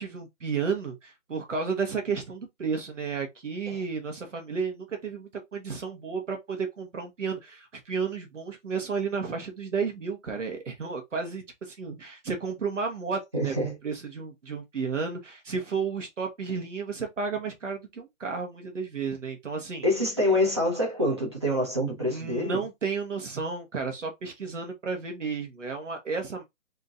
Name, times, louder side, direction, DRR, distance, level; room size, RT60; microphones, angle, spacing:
voice 1, 0.0-13.5 13.8-19.8 22.1-26.4, right 5 dB, 65° right, 1.4 m, -32 dB
voice 2, 13.3-13.8 19.8-22.6, left 1 dB, 20° right, 0.9 m, -26 dB
3.6 x 2.8 x 3.6 m
hypercardioid pair, 175°, 41 cm